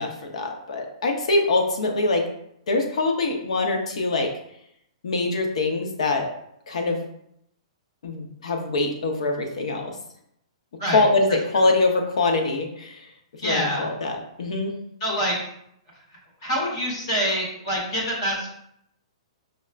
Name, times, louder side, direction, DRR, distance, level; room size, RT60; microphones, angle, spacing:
voice 1, 0.0-2.2 2.7-4.3 5.0-6.3 6.7-7.0 8.0-9.9 10.9-13.1 13.4-14.7, left 2 dB, 80° left, 3 dB, 0.7 m, -24 dB
voice 2, 13.4-13.9 15.0-15.4 16.4-18.5, equal, 40° left, -3 dB, 0.9 m, -25 dB
5.5 x 2.1 x 2.4 m, 0.74 s
hypercardioid pair, 175°, 3 cm